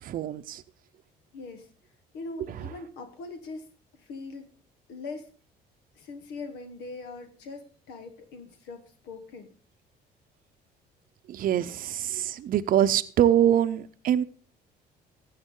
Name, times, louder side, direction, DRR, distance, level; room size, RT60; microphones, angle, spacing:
voice 1, 0.0-0.6 11.3-14.2, right 11 dB, 55° right, 10 dB, 0.7 m, -24 dB
voice 2, 1.3-1.7 2.1-3.7 4.0-4.5 4.9-5.3 5.9-9.5, left 3 dB, 90° left, 8 dB, 1.4 m, -41 dB
13.5 x 8.7 x 3.8 m, 0.41 s
cardioid pair, 110°, 17 cm